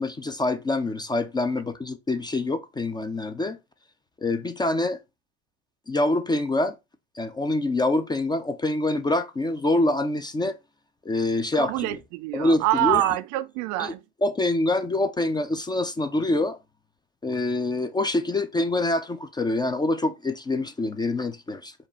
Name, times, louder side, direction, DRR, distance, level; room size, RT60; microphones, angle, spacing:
voice 1, 0.0-3.6 4.2-5.0 5.9-6.8 7.2-10.6 11.1-12.0 12.3-13.1 13.8-13.9 14.2-16.6 17.2-21.7, left 2 dB, 10° left, 0.4 m, -25 dB
voice 2, 11.6-14.0, right 16 dB, 50° right, 0.4 m, -25 dB
4.9 x 2.4 x 4.2 m
hypercardioid pair, 90°, 38 cm